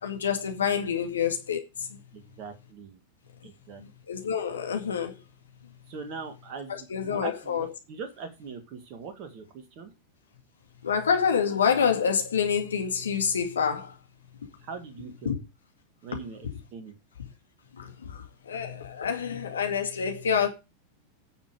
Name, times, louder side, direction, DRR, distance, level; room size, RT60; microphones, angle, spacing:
voice 1, 0.0-1.6 4.1-5.1 6.9-7.7 10.8-13.9 15.3-15.4 17.8-17.9 18.5-20.5, left 7 dB, 70° left, 2.2 m, -27 dB
voice 2, 2.1-3.0 3.4-3.8 5.9-9.9 14.6-15.3 16.0-17.0, right 5 dB, 40° right, 1.9 m, -41 dB
10.0 x 6.8 x 4.8 m
figure-of-eight pair, 90°, 0 cm